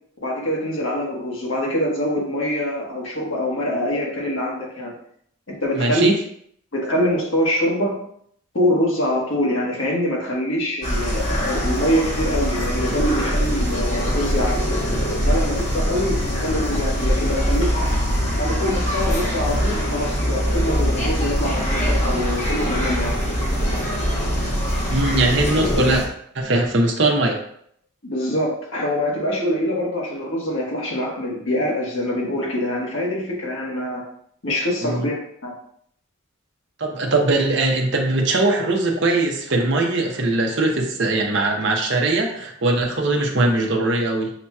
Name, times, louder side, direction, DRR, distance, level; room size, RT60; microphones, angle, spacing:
voice 1, 0.2-4.9 5.5-6.1 6.7-8.0 8.5-14.6 15.2-17.9 18.3-23.1 28.0-34.0 34.4-35.2 35.4-35.5, equal, 65° left, -3 dB, 1.3 m, -24 dB
voice 2, 5.7-6.1 24.9-26.0 26.3-27.4 34.8-35.1 36.8-44.3, right 2 dB, 55° right, 1 dB, 0.7 m, -20 dB
sound 1, 10.8-26.0, equal, 35° left, 1.0 m, -22 dB
6.6 x 2.8 x 2.3 m, 0.66 s
head